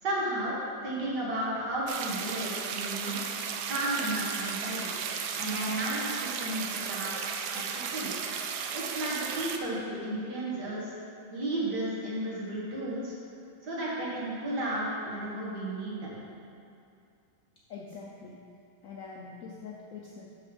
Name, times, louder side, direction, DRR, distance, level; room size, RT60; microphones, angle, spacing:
voice 1, 0.0-0.5 0.8-3.2 3.7-4.9 5.3-8.1 8.7-10.9 11.3-13.1 13.6-16.2, right 1 dB, 55° right, -6 dB, 2.2 m, -33 dB
sound 1, 1.9-9.6, right 6 dB, 75° right, 0.9 m, -35 dB
voice 2, 17.7-18.4 18.8-20.4, left 4 dB, 90° left, -2 dB, 0.7 m, -44 dB
6.6 x 5.9 x 5.2 m, 2.5 s
omnidirectional pair, 2.2 m